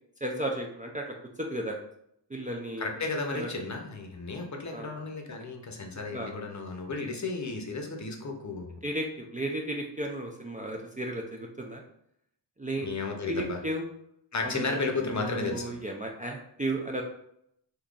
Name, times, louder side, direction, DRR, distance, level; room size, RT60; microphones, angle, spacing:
voice 1, 0.2-1.0 1.4-1.8 2.3-2.9 3.3-3.5 4.7-4.9 5.3-5.4 6.1-6.3 8.8-11.8 12.6-12.9 13.3-13.8 14.4-14.8 15.0-17.0, right 1 dB, 20° right, 0 dB, 0.4 m, -34 dB
voice 2, 2.8-8.8 12.8-13.6 14.3-15.7, left 3 dB, 40° left, 3 dB, 0.7 m, -33 dB
3.7 x 2.8 x 2.4 m, 0.72 s
cardioid pair, 65°, 45 cm